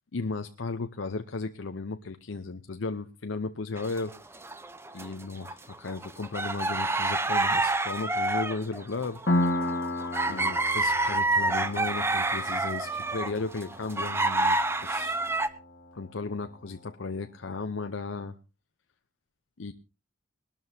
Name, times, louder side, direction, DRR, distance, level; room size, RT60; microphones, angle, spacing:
voice 1, 0.1-4.1 4.9-9.2 10.3-15.2 15.9-18.4 19.6-19.7, left 3 dB, 80° left, 7 dB, 0.7 m, -35 dB
sound 1, 3.8-5.1 5.5-15.5, right 2 dB, 15° right, 0.7 m, -28 dB
Piano, 9.3-16.7, left 1 dB, 60° left, 1.2 m, -34 dB
21.5 x 12.5 x 2.8 m, 0.30 s
head